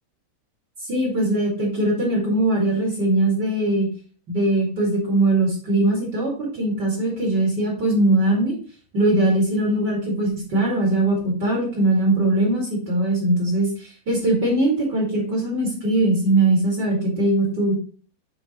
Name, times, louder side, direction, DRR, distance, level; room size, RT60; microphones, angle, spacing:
voice 1, 0.9-3.9 4.3-8.5 8.9-17.8, right 1 dB, 45° right, -3 dB, 1.4 m, -21 dB
7.2 x 3.9 x 5.1 m, 0.39 s
omnidirectional pair, 5.5 m